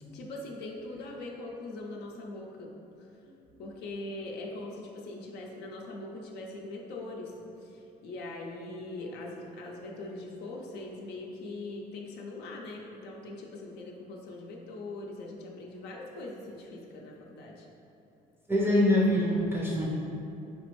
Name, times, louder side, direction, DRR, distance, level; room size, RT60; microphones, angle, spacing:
voice 1, 0.1-2.7 3.6-7.3 7.6-17.7, left 2 dB, 75° left, -1 dB, 0.5 m, -41 dB
voice 2, 18.5-19.9, left 1 dB, 15° right, -5 dB, 0.5 m, -24 dB
4.1 x 3.4 x 3.0 m, 2.8 s
cardioid pair, 110°, 17 cm